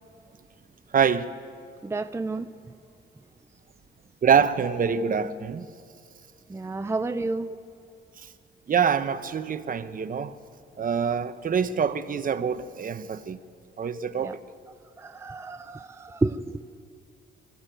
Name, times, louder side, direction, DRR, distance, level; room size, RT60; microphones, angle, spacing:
voice 1, 0.9-1.3 4.2-5.7 8.7-10.3 10.8-13.4 13.8-14.4, right 7 dB, 45° right, 1.0 m, -25 dB
voice 2, 1.8-2.5 6.5-7.5 14.2-14.4 15.0-16.6, right 3 dB, 15° right, 0.6 m, -30 dB
23.0 x 14.5 x 9.2 m
cardioid pair, 90°, 20 cm